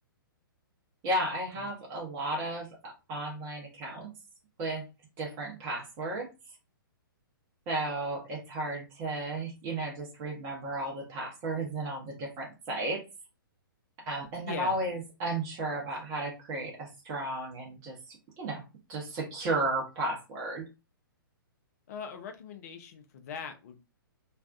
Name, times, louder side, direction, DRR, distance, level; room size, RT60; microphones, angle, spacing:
voice 1, 1.0-4.1 4.6-4.8 5.2-6.3 7.7-13.0 14.1-18.6 18.9-20.6, right 2 dB, 30° right, 0.8 m, -34 dB
voice 2, 14.4-14.7 21.9-23.8, left 7 dB, 45° left, 0.5 m, -41 dB
2.5 x 2.2 x 2.3 m
figure-of-eight pair, 120°, 12 cm